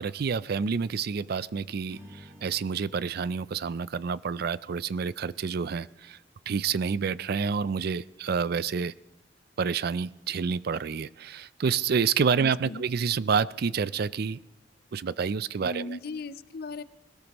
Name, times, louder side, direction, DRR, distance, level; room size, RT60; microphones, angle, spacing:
voice 1, 0.0-6.2 6.5-8.9 9.6-14.4 14.9-16.0, right 6 dB, 60° right, 18 dB, 0.4 m, -28 dB
Strum, 1.9-6.3, left 1 dB, 20° right, 3.0 m, -55 dB
voice 2, 12.4-12.8 15.6-16.8, left 3 dB, 60° left, 14 dB, 0.6 m, -37 dB
21.0 x 19.0 x 3.0 m, 0.96 s
head